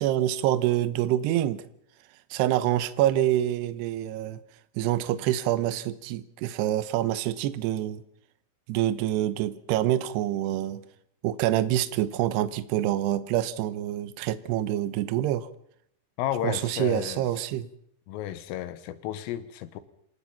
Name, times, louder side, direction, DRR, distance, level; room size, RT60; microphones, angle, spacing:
voice 1, 0.0-1.6 2.3-4.4 4.8-8.0 8.7-10.8 11.2-15.5 16.4-17.7, right 13 dB, 80° right, 2.5 m, -26 dB
voice 2, 16.2-17.2 18.1-19.8, left 11 dB, 80° left, 3.8 m, -32 dB
27.0 x 18.5 x 5.8 m
omnidirectional pair, 6.0 m